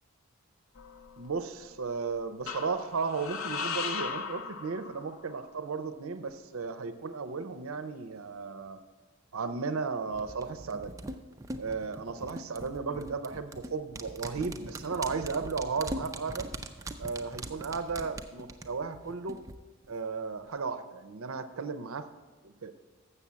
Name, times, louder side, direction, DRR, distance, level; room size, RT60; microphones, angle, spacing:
sound 1, 0.8-1.6 2.5-5.3, left 5 dB, 70° left, 0.7 m, -37 dB
voice 1, 1.2-8.8 9.3-11.0 11.6-16.5 17.0-19.4 19.9-22.1 22.4-22.7, right 4 dB, 75° right, 11 dB, 0.6 m, -35 dB
sound 2, 10.1-19.5 19.8-19.9, right 2 dB, 15° right, 0.3 m, -41 dB
7.0 x 6.9 x 7.2 m, 1.3 s
head